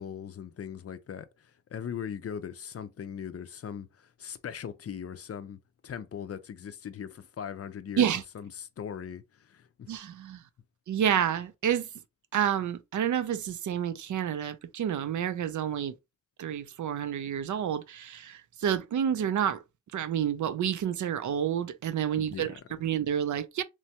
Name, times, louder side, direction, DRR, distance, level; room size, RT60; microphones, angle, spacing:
voice 1, 0.0-8.1 8.3-10.0 22.2-22.6, left 8 dB, 50° left, 0.4 m, -40 dB
voice 2, 9.9-10.4 10.9-11.9 12.3-15.9 16.4-19.6 19.9-22.5 22.8-23.6, right 9 dB, 70° right, 0.5 m, -29 dB
3.0 x 2.2 x 2.8 m
cardioid pair, 60°, 31 cm